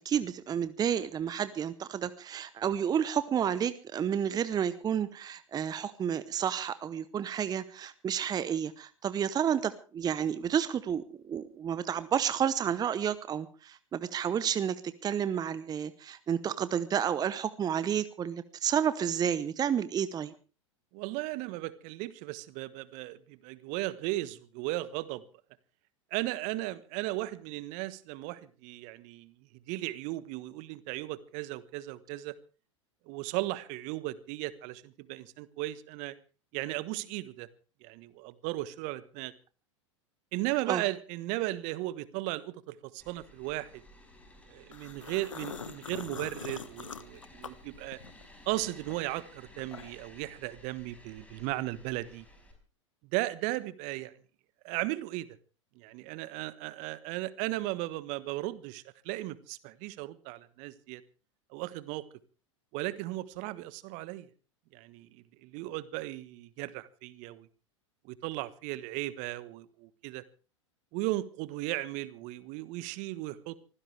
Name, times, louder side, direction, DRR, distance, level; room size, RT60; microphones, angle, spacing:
voice 1, 0.0-20.3 40.7-40.8, right 8 dB, 25° right, 0.9 m, -31 dB
voice 2, 20.9-25.2 26.1-29.3 29.7-32.4 33.1-36.2 36.5-37.5 37.8-39.3 40.3-43.8 44.5-48.0 48.4-52.2 53.1-54.1 54.6-55.3 55.7-61.0 61.5-62.0 62.7-64.3 64.7-67.5 68.0-70.2 70.9-73.6, right 18 dB, 50° right, 1.3 m, -36 dB
sound 1, 43.0-52.5, left 1 dB, 10° left, 5.2 m, -55 dB
sound 2, 44.7-48.3 48.6-50.1, left 6 dB, 85° left, 1.4 m, -43 dB
24.5 x 16.0 x 3.4 m
figure-of-eight pair, 90°, 16 cm